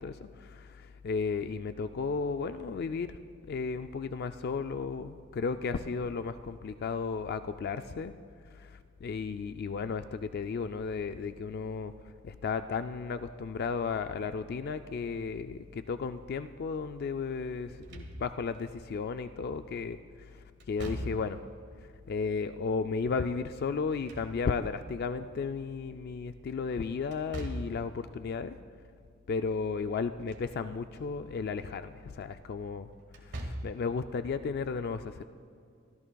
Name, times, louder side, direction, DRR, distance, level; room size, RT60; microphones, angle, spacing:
voice 1, 0.0-3.2 3.5-8.1 8.5-11.9 12.2-21.4 22.1-28.6 29.3-32.9 33.2-35.2, left 5 dB, 50° left, 10 dB, 0.3 m, -34 dB
Slam / Thump thud, 17.7-18.6 20.6-21.5 23.7-24.8 27.1-27.9 30.0-30.6 30.9-31.0 33.1-33.9, right 1 dB, 55° right, 1.6 m, -41 dB
26.5 x 14.0 x 2.3 m, 2.3 s
head